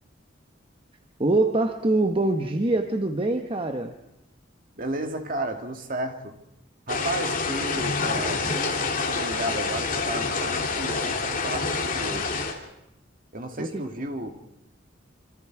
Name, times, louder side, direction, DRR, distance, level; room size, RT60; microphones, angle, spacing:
voice 1, 1.2-3.9 13.6-13.8, right 2 dB, 30° right, 6 dB, 1.0 m, -24 dB
voice 2, 4.8-6.4 6.9-12.3 13.3-14.3, right 1 dB, 45° right, 5 dB, 2.3 m, -33 dB
sound 1, 6.9-12.5, left 4 dB, 45° left, 2.8 m, -27 dB
27.0 x 25.5 x 4.8 m, 0.86 s
head